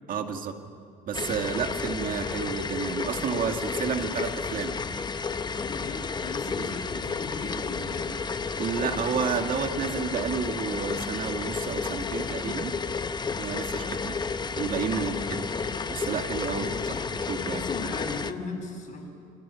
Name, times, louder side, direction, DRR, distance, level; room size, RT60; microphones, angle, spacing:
voice 1, 0.1-0.6 1.1-4.7 6.6-6.7 8.6-12.7 13.4-14.2 14.6-15.4 15.9-17.0 17.3-17.6, right 6 dB, 55° right, 5 dB, 2.0 m, -31 dB
sound 1, 1.1-18.3, left 5 dB, 25° left, 0.8 m, -32 dB
voice 2, 5.6-8.2 13.5-14.1 14.9-15.2 16.5-17.2 17.5-19.1, left 3 dB, 45° left, 1 dB, 6.0 m, -38 dB
29.0 x 25.0 x 5.7 m, 2.3 s
cardioid pair, 110°, 17 cm